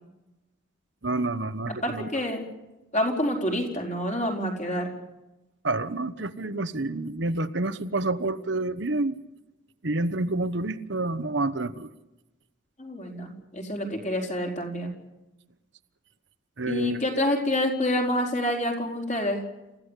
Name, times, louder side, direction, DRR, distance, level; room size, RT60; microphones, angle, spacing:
voice 1, 1.0-2.1 5.6-9.2 9.8-11.9 16.6-17.0, right 2 dB, 60° right, 12 dB, 1.1 m, -28 dB
voice 2, 1.8-2.5 2.9-4.9 12.8-14.9 16.7-19.4, left 1 dB, 35° left, 2 dB, 4.6 m, -27 dB
28.5 x 15.5 x 8.3 m, 1.0 s
head